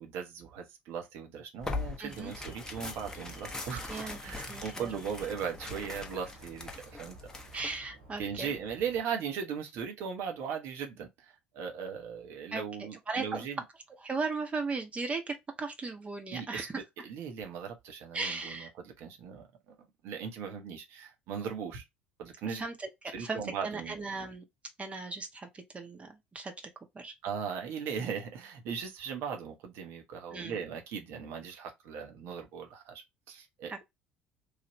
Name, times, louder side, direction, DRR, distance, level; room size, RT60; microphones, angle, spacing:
voice 1, 0.0-7.2 8.2-13.6 16.3-16.7 17.0-21.8 22.2-22.6 23.1-24.0 27.2-33.8, right 7 dB, 55° right, 0.8 m, -38 dB
Tearing, 1.6-7.8, left 3 dB, 10° left, 0.8 m, -41 dB
voice 2, 2.0-2.3 3.9-4.2 4.5-5.0 7.5-8.5 12.5-13.5 14.0-16.8 18.1-18.7 22.4-22.9 23.2-24.4 24.8-26.5 26.9-27.1 30.3-30.6 33.7-33.8, right 3 dB, 25° right, 0.9 m, -37 dB
Alarm, 2.1-9.0, right 3 dB, 70° right, 1.3 m, -52 dB
3.3 x 2.4 x 2.9 m
figure-of-eight pair, 60°, 5 cm